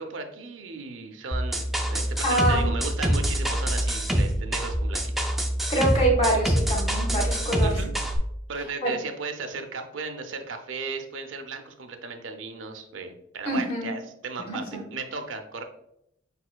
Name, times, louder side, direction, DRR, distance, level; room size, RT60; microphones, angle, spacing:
voice 1, 0.0-5.3 7.6-7.9 8.5-15.6, right 4 dB, 75° right, 5 dB, 0.6 m, -36 dB
sound 1, 1.3-8.2, equal, ahead, 0.4 m, -25 dB
voice 2, 2.2-2.8 5.7-7.8 8.8-8.9 13.4-13.9 14.5-14.8, right 1 dB, 30° left, -1 dB, 1.4 m, -25 dB
5.3 x 4.2 x 2.2 m, 0.76 s
head